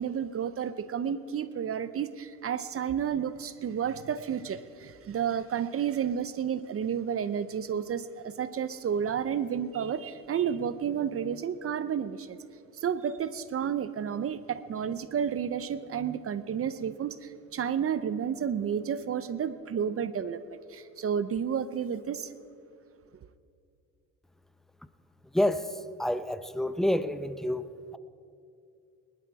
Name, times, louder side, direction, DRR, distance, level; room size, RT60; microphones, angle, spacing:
voice 1, 0.0-12.4 12.8-22.3, right 8 dB, 40° right, 13 dB, 0.7 m, -31 dB
voice 2, 26.0-27.6, left 1 dB, ahead, 13 dB, 0.6 m, -27 dB
19.5 x 11.5 x 4.8 m, 2.5 s
cardioid pair, 85°, 34 cm